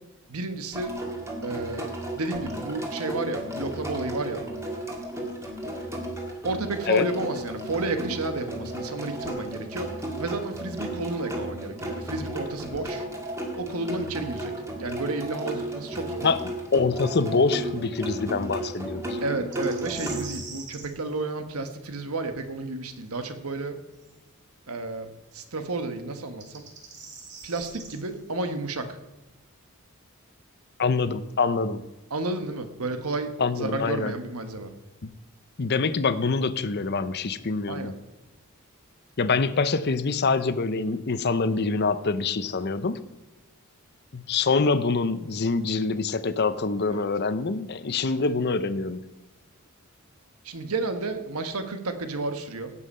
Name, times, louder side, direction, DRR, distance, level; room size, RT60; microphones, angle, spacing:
voice 1, 0.3-1.0 1.4-4.4 6.4-13.1 13.6-14.5 14.8-16.3 19.2-23.8 24.7-26.7 27.4-29.0 32.1-34.7 37.7-38.0 46.9-47.1 50.4-52.7, right 2 dB, 80° right, 8 dB, 1.3 m, -31 dB
sound 1, 0.7-20.2, right 1 dB, 15° right, 1.9 m, -34 dB
voice 2, 16.2-19.2 30.8-31.8 33.4-34.1 35.0-35.1 35.6-37.9 39.2-43.0 44.1-49.0, left 4 dB, 50° left, 13 dB, 0.6 m, -25 dB
sound 2, 19.5-20.9 24.0-24.1 26.2-27.9, right 5 dB, 55° right, 2.4 m, -42 dB
17.0 x 5.7 x 5.5 m, 1.0 s
head